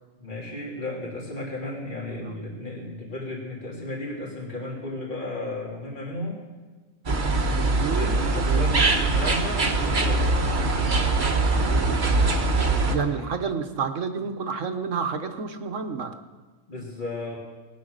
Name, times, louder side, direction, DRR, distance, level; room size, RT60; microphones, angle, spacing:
voice 1, 0.2-6.4 7.8-10.5 12.9-13.3 16.7-17.4, left 2 dB, 35° left, -3 dB, 3.1 m, -34 dB
sound 1, 7.1-13.0, right 3 dB, 40° right, 1.3 m, -22 dB
voice 2, 7.4-8.9 9.2-9.3 11.5-12.0 12.9-16.1, right 5 dB, 65° right, 7 dB, 1.4 m, -30 dB
20.0 x 9.4 x 6.5 m, 1.3 s
omnidirectional pair, 1.4 m